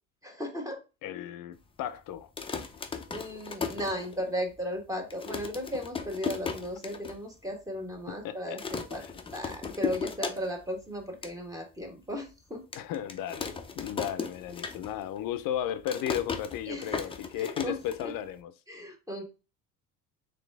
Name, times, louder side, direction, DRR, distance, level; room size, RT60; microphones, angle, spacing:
voice 1, 0.2-0.8 3.1-9.0 9.3-12.6 16.7-17.8 18.0-18.1 18.7-19.2, equal, 10° right, 1.2 m, -36 dB
voice 2, 1.0-2.3 8.2-8.6 9.0-9.1 12.8-18.5, left 10 dB, 60° left, 0.6 m, -35 dB
sound 1, 2.2-4.5 4.8-4.9 5.1-7.2 7.5-7.6 7.8-8.2 8.6-10.7 11.0-11.3 11.9-12.0 12.7-15.2 15.4-18.4, left 5 dB, 15° left, 0.5 m, -36 dB
4.0 x 3.3 x 3.2 m
cardioid pair, 120°, 37 cm